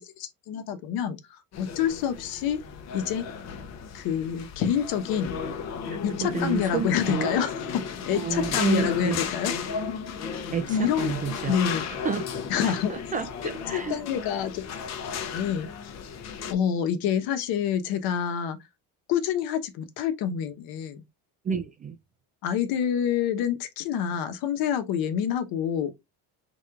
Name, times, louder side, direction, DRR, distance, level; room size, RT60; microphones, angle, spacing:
voice 1, 0.0-2.6 2.9-3.2 3.9-5.3 6.0-7.7 8.1-9.5 10.7-11.1 11.4-11.9 12.5-12.9 13.7-14.7 15.3-15.7 16.5-18.6 19.1-21.0 22.4-25.9, left 8 dB, 65° left, 1.0 m, -27 dB
sound 1, 1.5-16.5, left 6 dB, 40° left, 0.8 m, -35 dB
voice 2, 5.9-7.4 8.1-9.2 10.5-11.6 11.9-12.2 12.6-14.0 21.4-22.0, right 6 dB, 20° right, 0.4 m, -30 dB
4.6 x 4.0 x 2.4 m
cardioid pair, 160°, 39 cm